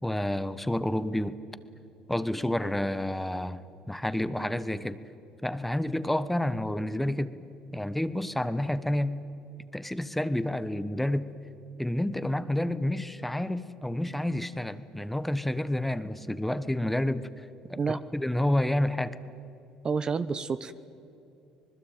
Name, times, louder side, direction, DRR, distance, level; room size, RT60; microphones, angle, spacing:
voice 1, 0.0-1.3 2.1-5.0 5.4-7.3 7.7-9.2 9.7-11.3 11.8-19.2, left 1 dB, 5° left, 13 dB, 1.2 m, -29 dB
voice 2, 19.8-20.7, right 5 dB, 35° right, 13 dB, 1.0 m, -29 dB
26.0 x 20.5 x 9.2 m, 2.7 s
supercardioid pair, 75°, 2 cm